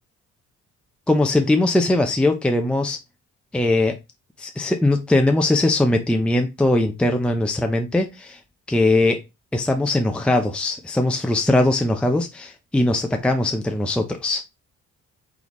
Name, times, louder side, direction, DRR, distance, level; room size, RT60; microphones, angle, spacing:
voice 1, 1.1-3.0 3.5-4.0 4.4-8.4 8.7-9.2 9.5-14.4, left 2 dB, 5° left, 5 dB, 0.5 m, -20 dB
4.0 x 3.4 x 3.0 m, 0.24 s
cardioid pair, 90°, 30 cm